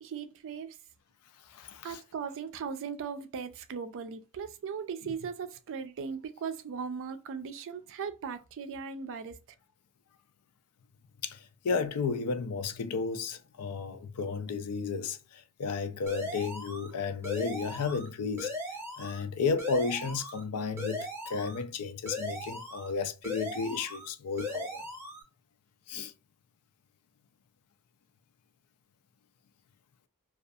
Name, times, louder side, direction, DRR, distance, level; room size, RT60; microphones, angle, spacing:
voice 1, 0.0-0.8 1.8-9.4, right 6 dB, 60° right, 0.4 m, -38 dB
voice 2, 1.5-2.0 11.2-18.5 19.0-24.8 25.9-26.1, left 5 dB, 90° left, 0.4 m, -33 dB
sound 1, 16.1-16.9 17.2-18.1 18.4-19.2 19.6-20.4 20.8-21.6 22.1-22.9 23.2-24.1 24.4-25.2, left 1 dB, 10° right, 0.7 m, -38 dB
2.3 x 2.3 x 2.6 m
head